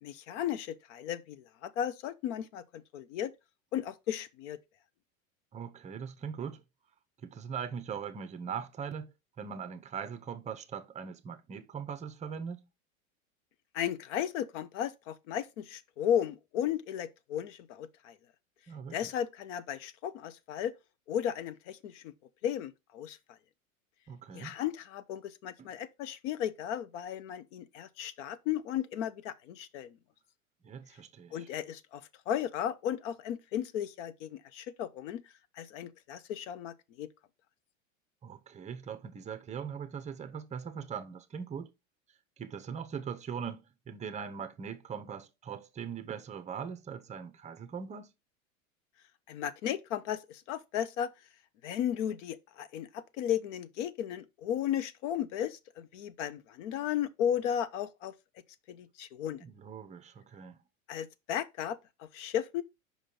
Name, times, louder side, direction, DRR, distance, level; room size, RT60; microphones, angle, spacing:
voice 1, 0.0-3.3 3.7-4.6 13.7-18.2 18.9-20.7 21.1-22.1 22.4-23.2 24.3-30.0 31.3-35.2 35.6-37.1 49.3-51.1 51.6-58.1 58.7-59.4 60.9-62.6, left 10 dB, 60° left, 0.8 m, -35 dB
voice 2, 5.5-6.6 7.2-9.1 9.4-12.7 18.7-19.1 24.1-24.6 25.6-25.7 30.6-31.5 38.2-41.7 42.4-48.1 59.4-60.6, right 7 dB, 15° right, 0.7 m, -41 dB
5.2 x 5.1 x 3.8 m
hypercardioid pair, 105°, 41 cm